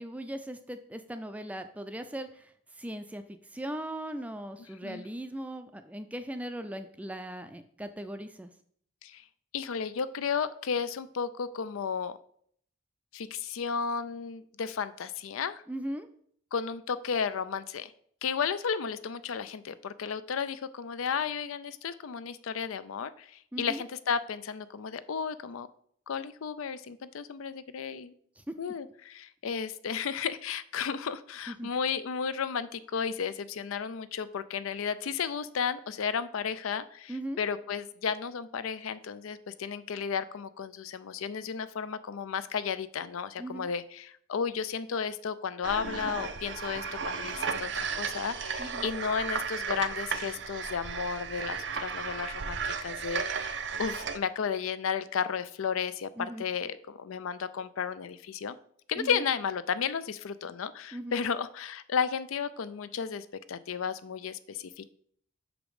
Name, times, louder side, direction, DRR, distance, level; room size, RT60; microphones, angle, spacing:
voice 1, 0.0-8.5 15.7-16.1 23.5-23.8 28.4-28.6 31.5-31.7 37.1-37.4 43.4-43.7 48.6-48.9 56.2-56.4 59.0-59.2 60.9-61.2, right 1 dB, 5° right, 9 dB, 0.3 m, -39 dB
voice 2, 9.5-12.2 13.1-15.6 16.5-17.9 18.2-25.7 26.1-28.1 28.6-58.6 58.9-64.9, left 6 dB, 85° left, 14 dB, 0.4 m, -33 dB
sound 1, 45.6-54.2, right 5 dB, 60° right, 0.5 m, -34 dB
6.1 x 5.1 x 4.8 m, 0.63 s
head